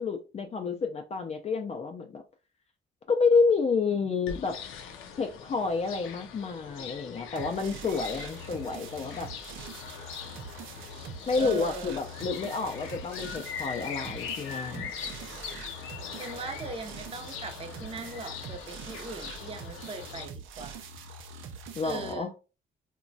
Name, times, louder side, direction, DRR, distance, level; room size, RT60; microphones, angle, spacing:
voice 1, 0.0-2.2 3.1-4.6 5.2-9.3 11.3-14.9 21.8-22.3, left 4 dB, 35° left, 0.4 m, -29 dB
sound 1, 4.3-20.3, left 7 dB, 90° left, 0.5 m, -42 dB
sound 2, 7.4-22.1, right 4 dB, 85° right, 0.5 m, -44 dB
voice 2, 11.4-11.9 16.2-20.8 21.8-22.3, right 3 dB, 30° right, 0.6 m, -39 dB
2.9 x 2.2 x 2.5 m
cardioid pair, 90°, 20 cm